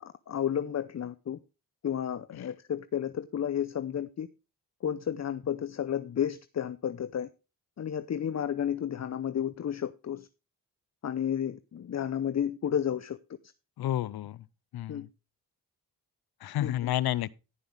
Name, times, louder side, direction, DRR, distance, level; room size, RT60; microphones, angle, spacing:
voice 1, 0.0-1.4 1.8-4.3 4.8-7.3 7.8-10.3 11.0-13.2 14.9-15.1 16.6-16.9, left 9 dB, 45° left, 0.7 m, -32 dB
voice 2, 13.8-14.4 14.7-15.1 16.4-17.3, left 13 dB, 85° left, 0.6 m, -30 dB
17.0 x 5.7 x 3.4 m
cardioid pair, 65°, 37 cm